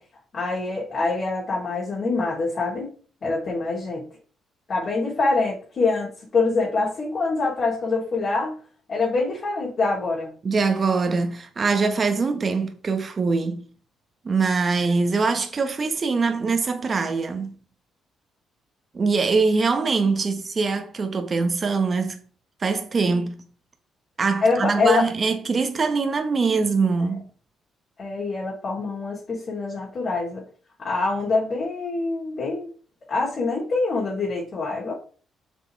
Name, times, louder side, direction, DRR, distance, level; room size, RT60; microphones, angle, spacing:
voice 1, 0.3-2.9 3.2-4.1 4.7-8.6 8.9-10.3 24.4-25.1 27.0-27.2 28.0-30.4 30.8-32.7 33.1-34.9, left 3 dB, 45° left, 3.9 m, -25 dB
voice 2, 10.4-13.7 14.2-17.5 18.9-22.2 22.6-23.4 24.2-27.3, right 4 dB, 40° right, 1.7 m, -23 dB
7.2 x 6.9 x 3.6 m
cardioid pair, 90°, 0 cm